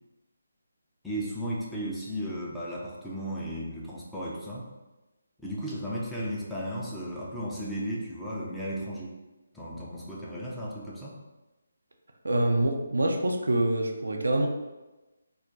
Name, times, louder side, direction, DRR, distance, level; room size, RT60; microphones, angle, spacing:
voice 1, 1.0-4.7 5.4-9.2 9.5-11.2, equal, 5° left, -7 dB, 0.4 m, -35 dB
voice 2, 12.2-14.5, right 1 dB, 65° right, 3 dB, 0.4 m, -25 dB
2.3 x 2.2 x 3.8 m, 1.1 s
figure-of-eight pair, 145°, 0 cm